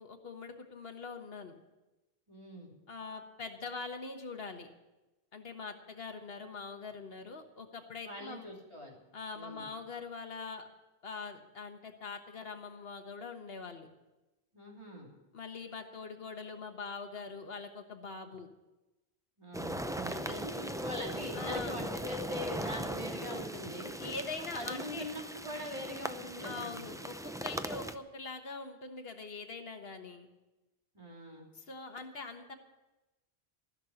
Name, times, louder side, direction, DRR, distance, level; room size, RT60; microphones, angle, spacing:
voice 1, 0.0-1.6 2.9-4.7 5.3-8.5 9.1-10.6 11.0-13.9 15.3-18.5 20.3-20.4 21.3-21.8 24.0-25.1 26.4-30.3 31.5-32.5, left 4 dB, 70° left, 5 dB, 1.5 m, -43 dB
voice 2, 2.3-2.7 8.0-9.0 9.3-9.7 14.5-15.1 19.4-23.9 24.5-26.9 30.9-31.5, left 1 dB, 30° right, -2 dB, 3.1 m, -42 dB
sound 1, 19.5-27.9, right 1 dB, 5° right, 0.4 m, -39 dB
14.5 x 6.6 x 9.7 m, 1.1 s
omnidirectional pair, 1.0 m